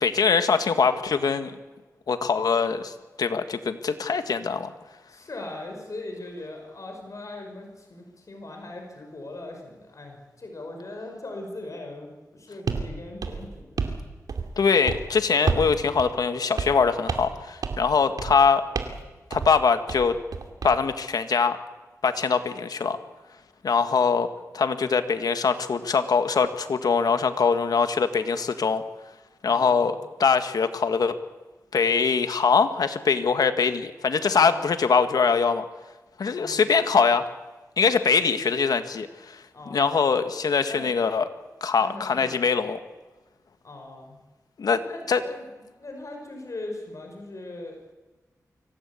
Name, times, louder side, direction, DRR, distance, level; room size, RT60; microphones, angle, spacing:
voice 1, 0.0-1.5 2.1-4.7 14.6-18.6 19.3-20.2 20.6-21.6 22.0-23.0 23.6-24.3 24.5-28.8 29.4-31.2 31.7-35.6 36.2-37.3 37.8-39.4 39.7-41.3 41.6-42.8 44.6-44.8 45.1-45.2, left 5 dB, 80° left, 9 dB, 1.7 m, -23 dB
voice 2, 5.1-13.9 29.4-29.9 34.3-34.6 36.3-36.6 39.5-39.9 40.7-40.9 41.8-42.4 43.6-44.2 44.8-45.4 45.8-47.8, left 2 dB, 55° left, 3 dB, 5.6 m, -39 dB
sound 1, 12.7-12.9 13.2-14.0 14.3-14.6 14.9-15.1 15.5-15.7 16.0-16.1 16.6-16.8 17.1-17.4 17.6-17.9 18.2-18.4 18.7-19.0 19.3-19.5 19.9-20.8, right 5 dB, 85° right, 2.5 m, -29 dB
24.5 x 17.5 x 8.5 m, 1.2 s
cardioid pair, 55°, 6 cm